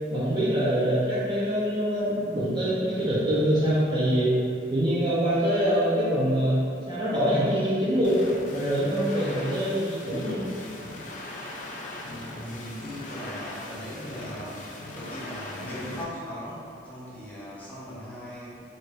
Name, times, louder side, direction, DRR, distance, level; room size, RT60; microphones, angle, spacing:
voice 1, 0.1-4.4 4.7-8.2 8.5-10.5, equal, 25° right, -9 dB, 0.4 m, -24 dB
sound 1, 8.0-16.0, left 2 dB, 45° left, 0.4 m, -40 dB
voice 2, 12.0-14.7 14.9-18.6, equal, 10° left, -10 dB, 0.7 m, -39 dB
2.6 x 2.3 x 3.2 m, 2.3 s
head